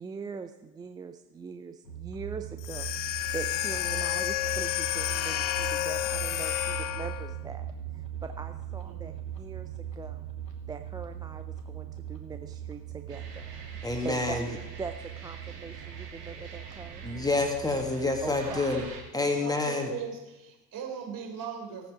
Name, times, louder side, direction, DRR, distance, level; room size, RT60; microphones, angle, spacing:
voice 1, 0.0-7.7 8.2-10.2 10.7-13.5 14.0-14.4 14.8-17.0 18.2-18.7 19.2-19.6, right 5 dB, 10° right, 7 dB, 0.4 m, -42 dB
sound 1, 1.8-19.0, right 10 dB, 85° left, 2.5 m, -40 dB
sound 2, 2.6-7.4, left 15 dB, 55° left, 1.0 m, -30 dB
sound 3, 13.1-19.0, right 4 dB, 75° right, 3.1 m, -46 dB
voice 2, 13.8-14.5 17.0-18.8 19.1-19.9, left 2 dB, 10° left, 3 dB, 1.9 m, -28 dB
voice 3, 19.4-21.9, right 7 dB, 40° right, 2 dB, 3.7 m, -38 dB
16.5 x 9.2 x 5.0 m, 1.0 s
figure-of-eight pair, 75°, 48 cm